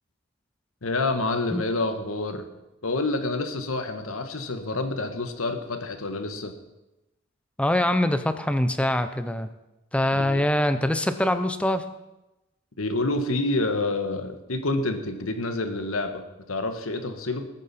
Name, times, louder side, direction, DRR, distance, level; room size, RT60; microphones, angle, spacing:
voice 1, 0.8-2.4 2.8-6.5 10.1-10.4 12.8-16.2 16.5-17.5, left 2 dB, 75° left, 7 dB, 1.4 m, -28 dB
voice 2, 7.6-9.5 9.9-11.8, left 1 dB, 5° left, 10 dB, 0.6 m, -24 dB
20.0 x 8.9 x 4.2 m, 0.97 s
head